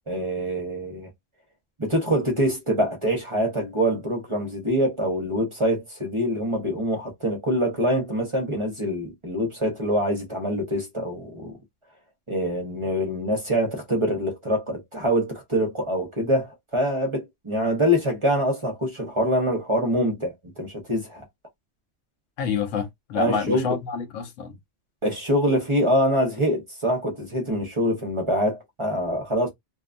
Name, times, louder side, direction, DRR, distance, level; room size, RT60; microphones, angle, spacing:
voice 1, 0.1-1.1 1.8-11.6 12.3-21.2 23.1-23.8 25.0-29.5, equal, 30° right, 0.7 m, -25 dB
voice 2, 22.4-24.6, left 5 dB, 80° left, 1.1 m, -28 dB
2.7 x 2.2 x 2.5 m
omnidirectional pair, 1.3 m